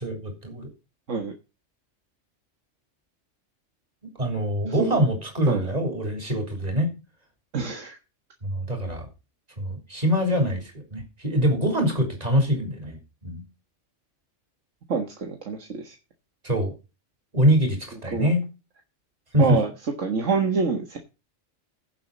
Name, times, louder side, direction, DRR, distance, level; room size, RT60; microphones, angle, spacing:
voice 1, 0.0-0.7 4.2-6.9 8.4-9.1 9.6-13.0 13.2-13.4 16.4-16.7 17.3-18.4 19.3-19.6, equal, 30° right, 4 dB, 3.9 m, -24 dB
voice 2, 4.7-5.0 5.5-5.7 7.5-8.0 14.9-16.0 18.1-18.3 19.4-21.0, right 5 dB, 80° right, 4 dB, 1.9 m, -26 dB
16.5 x 7.3 x 4.0 m, 0.29 s
omnidirectional pair, 1.3 m